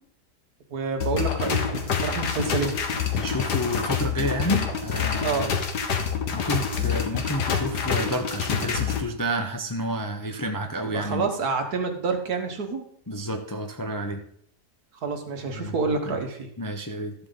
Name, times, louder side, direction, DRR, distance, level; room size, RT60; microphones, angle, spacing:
voice 1, 0.7-2.7 5.2-5.5 10.8-12.8 15.0-16.5, right 4 dB, 65° right, 5 dB, 1.8 m, -28 dB
sound 1, 1.0-9.0, left 7 dB, 75° left, 1.8 m, -27 dB
voice 2, 3.1-5.5 6.3-11.3 13.1-14.2 15.5-15.7 16.0-16.2 16.6-17.1, equal, 20° left, 4 dB, 0.6 m, -30 dB
13.5 x 7.7 x 3.9 m, 0.67 s
omnidirectional pair, 1.8 m